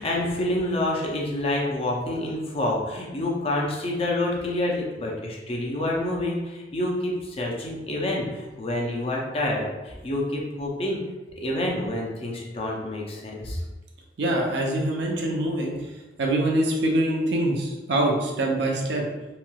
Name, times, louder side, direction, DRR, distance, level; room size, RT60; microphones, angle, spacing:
voice 1, 0.0-11.0 11.4-13.6, left 1 dB, 30° left, -2 dB, 0.5 m, -28 dB
voice 2, 14.2-15.8 16.2-19.0, right 1 dB, 65° right, 0 dB, 0.6 m, -24 dB
3.0 x 2.8 x 2.2 m, 1.1 s
head